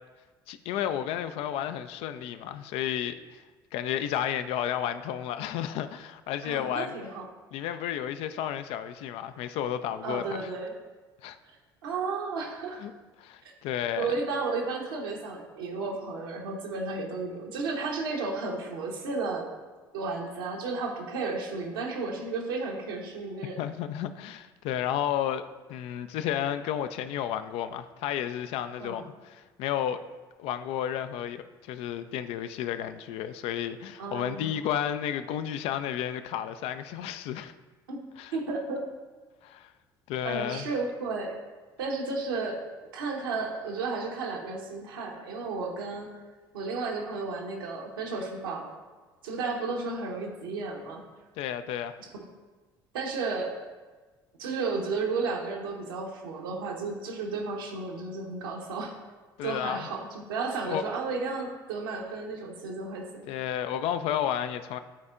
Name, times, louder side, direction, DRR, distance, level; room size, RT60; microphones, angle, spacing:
voice 1, 0.5-3.4 3.7-6.9 7.5-10.5 11.2-11.4 12.8-12.9 13.2-14.1 23.6-25.4 25.7-30.0 30.4-37.5 38.2-38.4 39.4-39.7 40.1-40.7 51.4-51.9 59.4-59.9 60.6-60.8 63.3-64.8, left 10 dB, 55° left, 0.4 m, -32 dB
voice 2, 6.4-7.3 10.0-10.7 11.8-12.8 13.4-13.5 13.9-19.5 19.9-23.6 28.8-29.1 34.0-34.5 37.9-38.0 38.3-38.8 40.2-41.4 41.8-42.6 42.9-46.1 46.5-48.7 49.2-51.0 52.1-52.2 52.9-53.5 54.4-59.0 59.4-63.2, right 4 dB, 75° right, 1.0 m, -33 dB
10.5 x 4.2 x 2.4 m
figure-of-eight pair, 55°, 12 cm